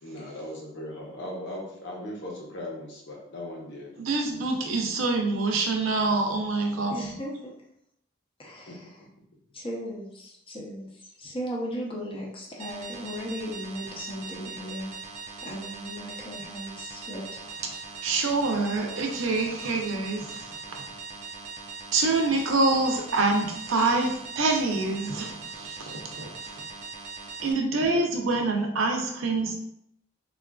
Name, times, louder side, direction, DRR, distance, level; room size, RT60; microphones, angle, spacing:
voice 1, 0.0-3.9 8.4-8.8, left 1 dB, 60° left, -1 dB, 0.8 m, -38 dB
voice 2, 4.0-7.1 18.0-20.8 21.9-26.6 27.4-29.5, right 3 dB, 80° right, 2 dB, 0.6 m, -26 dB
voice 3, 6.9-7.5 8.4-9.0 9.5-15.0 15.4-17.3, equal, 25° left, -2 dB, 0.6 m, -37 dB
sound 1, 12.6-27.5, right 4 dB, 35° right, 0.4 m, -41 dB
3.6 x 2.4 x 2.3 m, 0.74 s
head